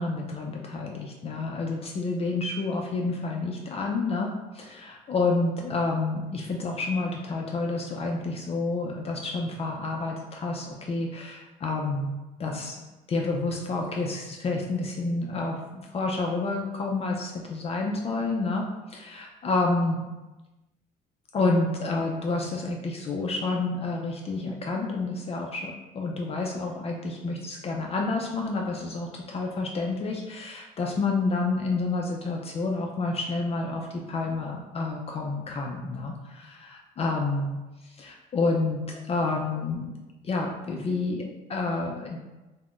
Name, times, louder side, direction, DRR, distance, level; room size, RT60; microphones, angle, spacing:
voice 1, 0.0-12.1 12.4-12.8 13.1-20.0 21.3-37.5 37.8-40.0 40.2-42.2, left 3 dB, 35° left, 0 dB, 0.4 m, -29 dB
2.4 x 2.1 x 3.6 m, 1.1 s
cardioid pair, 110°, 17 cm